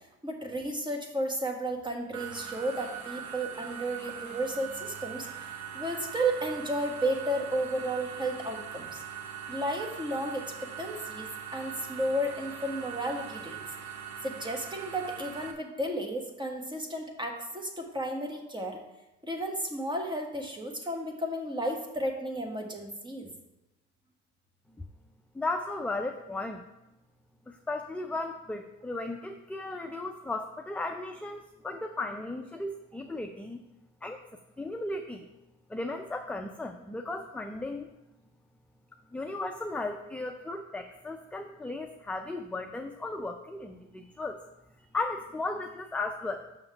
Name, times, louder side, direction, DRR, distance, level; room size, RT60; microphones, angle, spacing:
voice 1, 0.2-5.2 5.7-9.0 9.5-10.4 10.8-13.6 14.2-18.8 19.2-23.3, right 1 dB, 15° right, 2 dB, 1.5 m, -33 dB
sound 1, 2.1-15.5, right 8 dB, 65° right, 0.9 m, -41 dB
voice 2, 25.3-26.6 27.5-33.6 34.0-34.2 34.6-35.3 35.7-37.9 39.1-44.4 44.9-46.5, left 2 dB, 5° left, 4 dB, 0.4 m, -35 dB
6.2 x 5.7 x 5.7 m, 0.96 s
cardioid pair, 90°, 30 cm